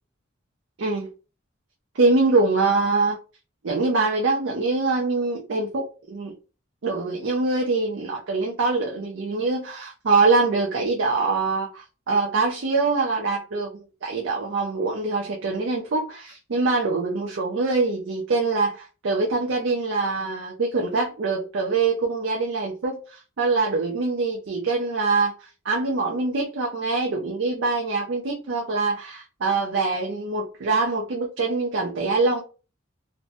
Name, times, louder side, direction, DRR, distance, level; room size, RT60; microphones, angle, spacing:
voice 1, 2.0-3.2 3.6-6.3 6.8-32.4, right 3 dB, 60° right, 0.5 m, -24 dB
2.6 x 2.1 x 2.5 m
head